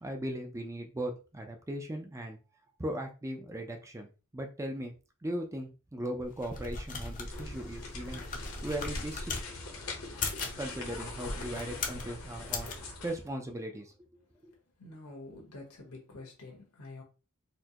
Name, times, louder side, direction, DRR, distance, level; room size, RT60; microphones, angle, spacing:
voice 1, 0.0-2.4 2.8-4.1 4.3-4.9 5.2-8.2 8.6-9.3 10.6-12.7 13.0-13.9, right 1 dB, 15° right, 0.4 m, -38 dB
sound 1, 6.2-9.5 10.1-10.6 11.3-12.1 12.5-12.8, left 4 dB, 35° left, 0.6 m, -38 dB
sound 2, 7.2-13.2, left 2 dB, 65° left, 0.9 m, -42 dB
voice 2, 14.8-17.0, left 2 dB, 85° left, 1.3 m, -47 dB
4.3 x 2.1 x 2.8 m
head